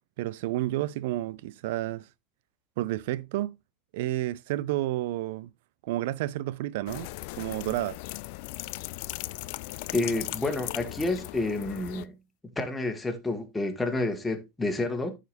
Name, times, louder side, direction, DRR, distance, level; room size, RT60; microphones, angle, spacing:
voice 1, 0.2-2.1 2.8-3.6 3.9-5.5 5.8-8.0, right 15 dB, 65° right, 0.4 m, -31 dB
sound 1, 6.9-12.0, left 20 dB, 60° left, 0.4 m, -38 dB
voice 2, 9.9-12.1 12.4-15.2, left 2 dB, 10° left, 2.0 m, -29 dB
14.0 x 5.0 x 2.7 m
hypercardioid pair, 85°, 0 cm